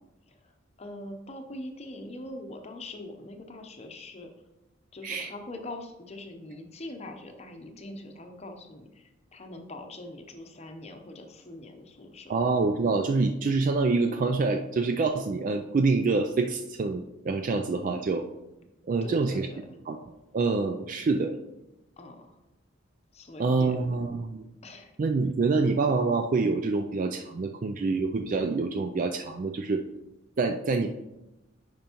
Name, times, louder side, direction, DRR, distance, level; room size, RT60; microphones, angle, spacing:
voice 1, 0.3-4.3 4.9-12.4 19.0-19.8 22.0-22.4 23.1-23.9 24.6-25.0, left 1 dB, 35° left, 5 dB, 0.7 m, -43 dB
voice 2, 12.3-18.2 18.9-19.5 19.9-20.0 20.3-21.4 23.4-24.4 25.0-29.8 30.4-30.9, right 3 dB, 40° right, 5 dB, 0.3 m, -26 dB
8.9 x 5.1 x 2.9 m, 0.97 s
head